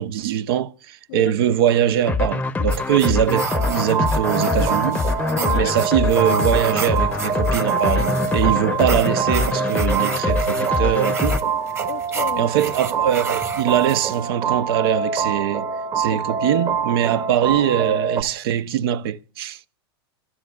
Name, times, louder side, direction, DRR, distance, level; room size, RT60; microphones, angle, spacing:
voice 1, 0.0-5.0 5.5-11.4 12.4-15.7 16.0-19.6, right 10 dB, 65° right, 0.7 m, -22 dB
sound 1, 2.1-11.4, left 3 dB, 10° left, 0.7 m, -24 dB
sound 2, 2.7-14.2, right 4 dB, 20° right, 1.2 m, -33 dB
sound 3, 3.3-18.2, right 6 dB, 40° right, 1.7 m, -25 dB
voice 2, 5.3-5.7 8.7-8.8 11.9-12.5 16.1-16.2, left 18 dB, 60° left, 0.6 m, -31 dB
29.0 x 12.5 x 2.3 m
hypercardioid pair, 110°, 13 cm